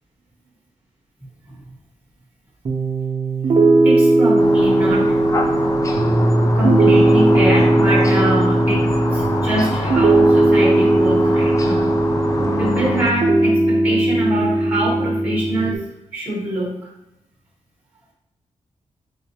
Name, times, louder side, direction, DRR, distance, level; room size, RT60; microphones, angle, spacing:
Piano, 2.6-15.7, right 2 dB, 45° right, 0.7 m, -17 dB
voice 1, 3.8-5.2 6.6-8.8 9.1-11.9 12.6-15.8 16.1-16.9, right 1 dB, 15° right, -4 dB, 1.5 m, -24 dB
sound 1, 4.4-13.1, left 2 dB, 25° left, 0.4 m, -26 dB
4.9 x 3.8 x 2.8 m, 0.85 s
wide cardioid pair, 165°, 13 cm